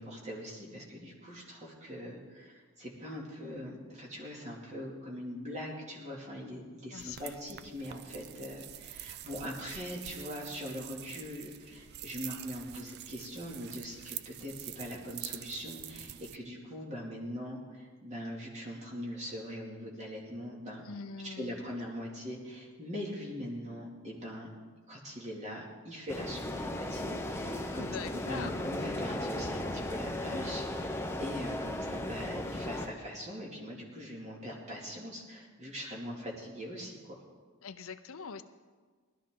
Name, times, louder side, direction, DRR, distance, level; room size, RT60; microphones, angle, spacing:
voice 1, 0.0-20.8 21.2-24.5 24.9-37.2, equal, 30° right, -2 dB, 2.5 m, -42 dB
voice 2, 6.9-7.3 20.8-21.6 27.8-28.5 37.6-38.4, left 5 dB, 65° left, 11 dB, 0.6 m, -43 dB
sound 1, 7.0-16.4, right 13 dB, 45° right, 0.3 m, -46 dB
sound 2, 26.1-32.9, left 1 dB, 10° left, 0.7 m, -36 dB
18.0 x 12.5 x 3.8 m, 1.5 s
head